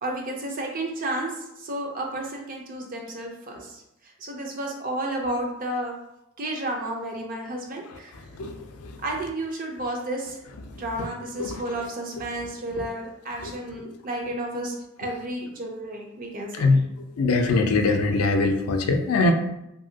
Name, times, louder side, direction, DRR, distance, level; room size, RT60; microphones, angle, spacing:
voice 1, 0.0-3.8 4.2-6.0 6.4-8.1 9.0-10.4 10.7-16.7, right 1 dB, 40° right, 1 dB, 0.5 m, -32 dB
voice 2, 17.2-19.3, left 3 dB, 85° left, 5 dB, 0.4 m, -22 dB
2.8 x 2.6 x 2.7 m, 0.86 s
head